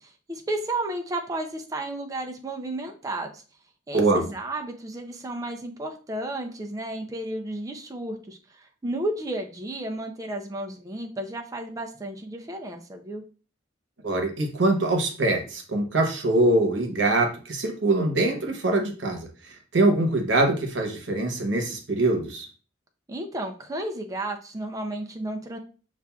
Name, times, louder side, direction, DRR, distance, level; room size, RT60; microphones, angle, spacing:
voice 1, 0.0-3.4 3.9-13.2 23.1-25.6, right 1 dB, 20° right, 3 dB, 0.4 m, -32 dB
voice 2, 14.0-19.3 19.7-22.5, right 2 dB, 80° right, 3 dB, 0.9 m, -23 dB
6.8 x 2.4 x 2.3 m, 0.38 s
head